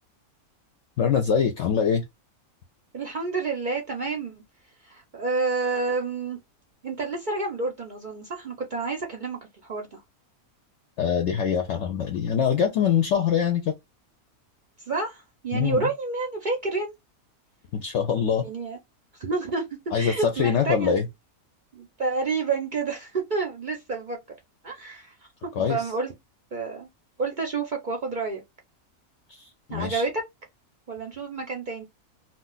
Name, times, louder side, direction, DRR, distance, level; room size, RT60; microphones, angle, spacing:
voice 1, 1.0-2.0 11.0-13.7 15.5-15.9 17.7-18.4 19.9-21.1 25.6-25.9 29.3-30.0, left 7 dB, 65° left, 0.7 m, -24 dB
voice 2, 2.9-4.4 4.8-6.4 6.8-10.0 14.9-16.9 18.4-18.8 19.2-19.7 20.0-20.9 21.7-24.2 24.6-25.1 25.4-26.1 26.5-26.9 27.2-28.4 29.7-30.1 30.9-31.8, right 4 dB, 55° right, 0.5 m, -29 dB
2.5 x 2.2 x 3.8 m
omnidirectional pair, 1.5 m